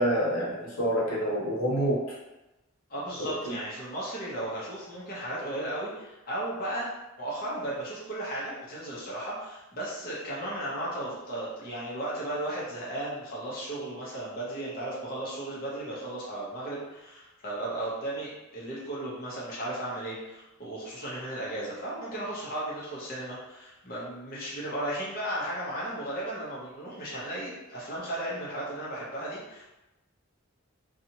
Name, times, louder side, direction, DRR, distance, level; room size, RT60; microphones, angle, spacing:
voice 1, 0.0-2.0 3.2-3.5, equal, 80° left, -5 dB, 0.8 m, -27 dB
voice 2, 2.9-29.6, right 1 dB, 45° left, -7 dB, 0.8 m, -35 dB
2.8 x 2.4 x 2.8 m, 0.99 s
head